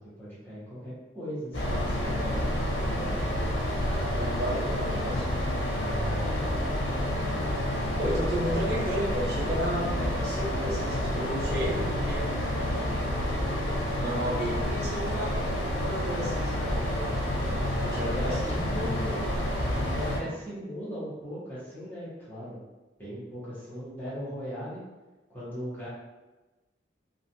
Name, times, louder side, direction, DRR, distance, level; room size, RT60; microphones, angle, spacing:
voice 1, 0.2-3.3 6.1-6.4 17.9-19.2 19.8-22.6 23.0-24.8 25.3-25.9, equal, 10° left, -11 dB, 1.0 m, -38 dB
sound 1, 1.5-20.2, left 1 dB, 90° left, 0.6 m, -29 dB
voice 2, 3.8-5.4 5.7-6.3 7.1-7.5 8.0-12.5 14.0-15.4 15.8-17.0 17.8-18.6, equal, 55° right, -8 dB, 0.9 m, -33 dB
2.9 x 2.4 x 2.6 m, 1.1 s
head